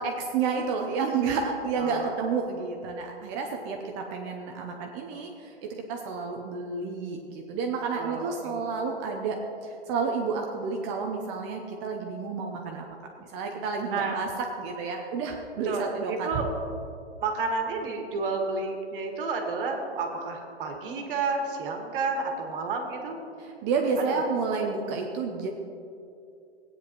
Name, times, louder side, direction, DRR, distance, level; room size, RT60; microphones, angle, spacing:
voice 1, 0.0-12.8 13.2-14.3 14.6-16.4 23.4-25.5, right 5 dB, 25° right, 2 dB, 0.7 m, -30 dB
voice 2, 1.8-2.1 7.9-8.6 13.9-14.3 15.6-16.5 17.2-23.2 24.1-24.2, right 4 dB, 50° right, 2 dB, 1.7 m, -31 dB
16.0 x 9.2 x 3.0 m, 2.6 s
hypercardioid pair, 140°, 34 cm